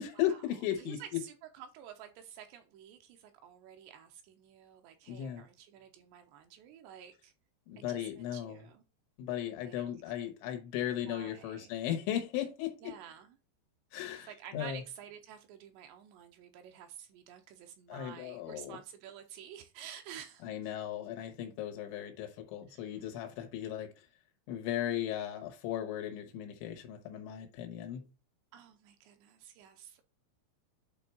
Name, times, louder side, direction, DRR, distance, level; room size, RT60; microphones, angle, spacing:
voice 1, 0.0-1.2 5.1-5.5 7.7-8.7 9.2-13.0 13.9-14.8 17.9-18.8 20.4-23.9 24.5-28.0, left 11 dB, 85° left, 3.3 m, -36 dB
voice 2, 0.8-7.3 7.8-8.8 9.6-9.8 11.0-11.7 12.8-13.4 14.3-20.5 22.7-23.1 28.5-30.0, right 9 dB, 85° right, 2.8 m, -50 dB
8.8 x 3.4 x 4.3 m
omnidirectional pair, 5.2 m